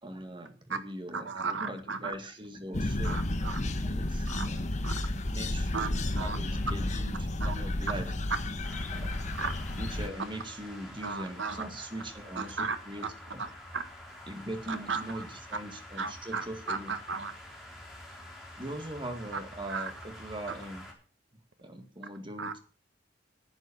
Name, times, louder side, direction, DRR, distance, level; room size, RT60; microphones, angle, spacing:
voice 1, 0.0-3.2 3.8-4.7 5.3-8.2 8.9-9.2 9.8-13.4 14.3-16.9 18.6-20.9 21.6-22.6, right 1 dB, 25° right, 6 dB, 2.0 m, -41 dB
voice 2, 1.1-2.0 3.0-3.6 4.3-4.5 4.8-4.9 5.7-5.9 6.1-6.4 7.4-7.6 9.4-9.5 11.0-11.6 12.4-12.8 13.4-13.5 13.7-13.8 14.7-15.2 16.0-17.3 19.7-19.9 22.4-22.5, right 5 dB, 80° right, 10 dB, 1.5 m, -35 dB
sound 1, 2.7-10.1, left 1 dB, 40° left, 1.1 m, -32 dB
sound 2, 8.6-20.9, left 1 dB, ahead, 3.9 m, -48 dB
11.5 x 8.1 x 7.0 m, 0.37 s
head